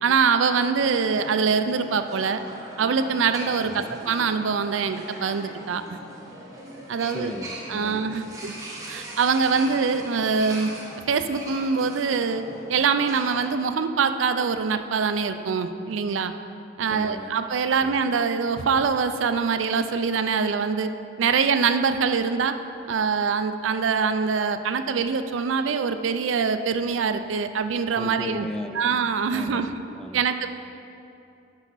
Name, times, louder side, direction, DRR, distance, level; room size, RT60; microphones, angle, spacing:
voice 1, 0.0-2.4 2.8-6.0 6.9-7.3 7.7-8.5 8.9-10.7 11.1-12.4 12.7-16.3 16.8-20.9 21.2-22.5 22.9-28.5 28.7-29.7 30.1-30.5, right 5 dB, 90° right, 9 dB, 0.4 m, -24 dB
sound 1, 0.7-13.5, right 1 dB, 15° right, 1.3 m, -40 dB
voice 2, 3.6-4.0 7.1-8.1 16.9-17.3 17.8-18.0 28.0-29.0 29.3-30.3, equal, 5° left, 5 dB, 0.3 m, -36 dB
10.5 x 5.7 x 4.1 m, 2.7 s
head